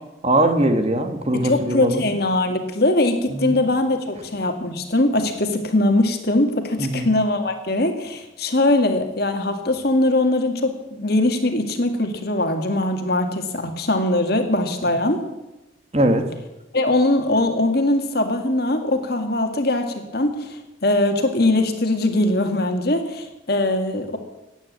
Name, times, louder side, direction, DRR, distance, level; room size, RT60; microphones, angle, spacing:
voice 1, 0.2-2.0 3.3-3.6 6.8-7.1 15.9-16.2, right 1 dB, 30° right, 7 dB, 1.5 m, -20 dB
voice 2, 1.3-15.2 16.7-24.2, left 2 dB, 50° left, 6 dB, 2.0 m, -21 dB
15.5 x 9.5 x 8.9 m, 0.97 s
head